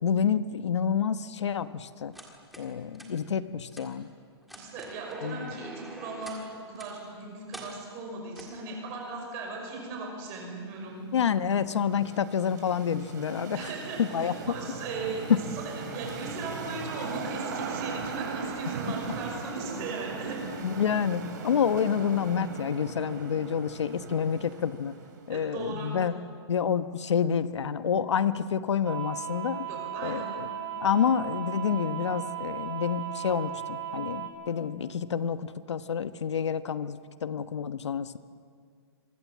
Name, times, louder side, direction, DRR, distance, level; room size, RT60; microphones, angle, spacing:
voice 1, 0.0-2.1 2.6-4.1 5.2-5.5 11.1-13.7 14.0-14.3 15.3-15.4 20.6-25.0 25.3-26.1 26.5-29.6 30.0-30.5 30.8-38.2, left 7 dB, 90° left, 12 dB, 1.1 m, -28 dB
sound 1, 2.1-2.7 2.9-3.1 3.7-3.9 4.4-6.4 6.8-6.9 7.5-7.7 8.4-8.6, right 1 dB, ahead, 1.8 m, -45 dB
voice 2, 4.5-11.0 13.5-15.2 15.5-15.6 15.9-20.4 25.3-26.0 29.7-30.3, right 3 dB, 20° right, 0 dB, 5.5 m, -38 dB
sound 2, 10.9-25.4, right 5 dB, 40° right, 3.7 m, -39 dB
sound 3, 28.8-34.3, right 9 dB, 80° right, 5.8 m, -36 dB
26.5 x 24.0 x 7.5 m, 2.1 s
hypercardioid pair, 180°, 14 cm